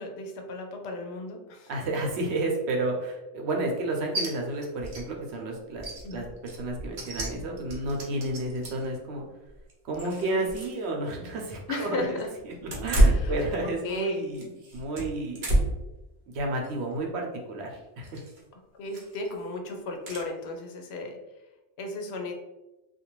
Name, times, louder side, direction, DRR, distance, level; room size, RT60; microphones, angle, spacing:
voice 1, 0.0-1.7 6.0-6.3 10.2-10.5 11.7-12.3 13.0-13.4 13.8-14.2 18.7-21.2 21.8-22.3, left 2 dB, 75° left, 3 dB, 0.8 m, -35 dB
voice 2, 1.7-5.9 6.1-9.2 9.8-12.2 12.4-15.5 16.3-18.2, right 2 dB, 80° right, 1 dB, 0.9 m, -31 dB
sound 1, 4.1-4.3 4.6-5.0 5.3-5.4 5.8-8.9 9.5-10.8 11.1-11.2 12.6-14.0 14.3-15.9 16.4-16.7 18.0-18.4 18.9-19.3 20.1-20.2, right 1 dB, 55° right, 0.8 m, -28 dB
2.5 x 2.3 x 2.9 m, 1.0 s
omnidirectional pair, 1.1 m